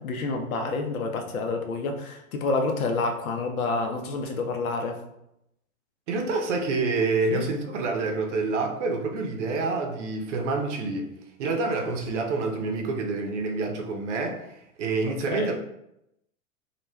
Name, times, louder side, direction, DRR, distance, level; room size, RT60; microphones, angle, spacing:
voice 1, 0.0-5.0 7.3-7.5 15.0-15.5, left 3 dB, 75° left, 3 dB, 0.7 m, -28 dB
voice 2, 6.1-11.1 11.4-15.5, right 3 dB, 55° right, 3 dB, 0.7 m, -27 dB
2.3 x 2.1 x 3.2 m, 0.82 s
hypercardioid pair, 100°, 43 cm